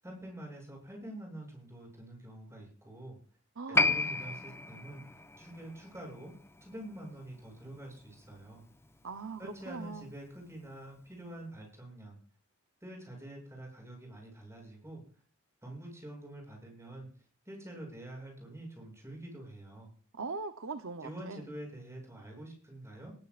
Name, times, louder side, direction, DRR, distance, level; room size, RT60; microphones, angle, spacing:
voice 1, 0.0-3.2 3.7-6.3 6.6-8.6 9.4-12.2 12.8-15.0 15.6-19.9 21.0-23.1, right 1 dB, 15° right, 7.6 m, -46 dB
voice 2, 3.6-3.9 9.0-10.1 20.1-21.4, right 4 dB, 65° right, 0.9 m, -41 dB
Piano, 3.7-10.7 11.0-11.1, left 3 dB, 10° left, 0.7 m, -35 dB
20.0 x 15.5 x 2.5 m
head